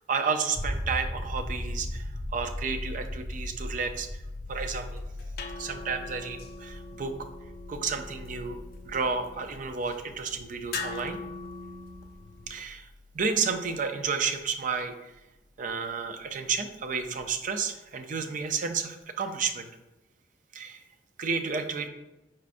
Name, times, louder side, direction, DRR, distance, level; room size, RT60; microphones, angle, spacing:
voice 1, 0.1-4.1 4.5-5.0 5.6-7.1 7.7-8.6 8.8-11.2 12.5-12.9 13.1-15.1 15.6-19.7 20.5-20.8 21.2-21.9, right 5 dB, 50° right, 7 dB, 0.4 m, -31 dB
sound 1, 0.6-14.1 16.8-16.9, left 1 dB, 5° left, 0.5 m, -39 dB
sound 2, 4.7-12.6, left 4 dB, 60° left, 0.4 m, -42 dB
4.8 x 4.3 x 2.5 m, 0.99 s
head